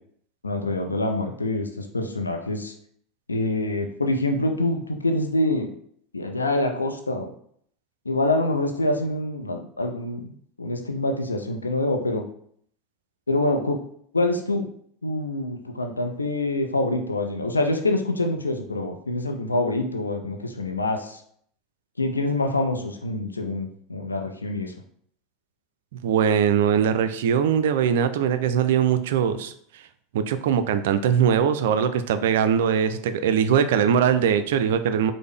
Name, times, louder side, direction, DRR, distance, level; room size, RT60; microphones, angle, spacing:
voice 1, 0.4-2.7 3.3-5.7 6.1-7.3 8.1-10.3 10.6-12.2 13.3-13.8 14.1-14.7 15.0-21.2 22.0-24.7, left 2 dB, 80° left, 3 dB, 0.4 m, -25 dB
voice 2, 26.0-29.5 30.1-35.1, right 8 dB, 60° right, 10 dB, 0.3 m, -21 dB
4.8 x 2.0 x 3.5 m, 0.64 s
figure-of-eight pair, 80°, 0 cm